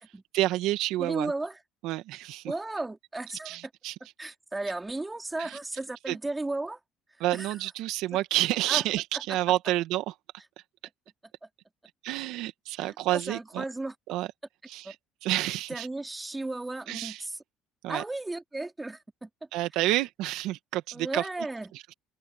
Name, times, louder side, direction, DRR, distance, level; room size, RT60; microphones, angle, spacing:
voice 1, 0.3-1.3 1.8-2.5 3.5-4.0 5.4-5.6 6.1-6.2 7.2-10.1 12.0-13.6 14.1-14.3 14.7-15.0 15.2-15.9 16.9-17.3 17.8-18.0 19.5-21.5 21.7-21.9, right 16 dB, 80° right, 1.9 m, -29 dB
voice 2, 1.0-1.6 2.5-3.6 4.2-6.8 7.3-7.6 8.7-8.8 12.8-13.9 14.8-14.9 15.7-17.4 17.9-19.3 20.9-21.7, right 2 dB, 15° right, 4.0 m, -34 dB
supercardioid pair, 85°, 0 cm